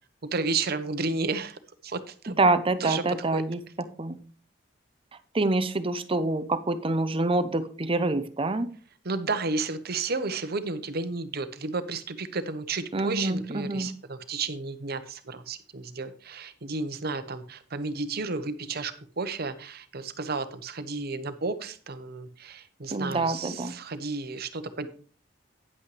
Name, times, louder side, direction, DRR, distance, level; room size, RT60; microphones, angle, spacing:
voice 1, 0.2-2.3 2.8-3.4 9.0-24.9, right 3 dB, 55° right, 11 dB, 1.0 m, -32 dB
voice 2, 2.3-4.2 5.3-8.7 12.9-13.9 22.9-23.7, right 2 dB, 30° right, 13 dB, 0.7 m, -26 dB
9.8 x 8.5 x 3.3 m, 0.42 s
head